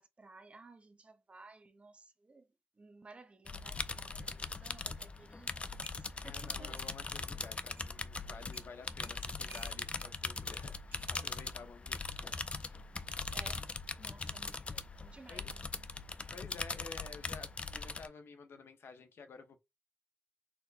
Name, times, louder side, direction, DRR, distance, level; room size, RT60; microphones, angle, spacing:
voice 1, 0.0-2.5 2.8-6.7 13.3-13.7 14.0-15.7, right 3 dB, 30° right, 0.7 m, -57 dB
sound 1, 3.5-18.1, left 3 dB, 25° left, 0.4 m, -41 dB
sound 2, 5.8-7.0 7.8-7.9 8.5-8.7 9.0-10.1 10.9-11.1 12.2-12.5, right 3 dB, 60° right, 1.5 m, -57 dB
voice 2, 6.3-12.8 13.9-14.0 15.3-15.5 16.3-19.6, left 5 dB, 65° left, 0.8 m, -52 dB
4.4 x 2.1 x 4.1 m
wide cardioid pair, 120°, 4 cm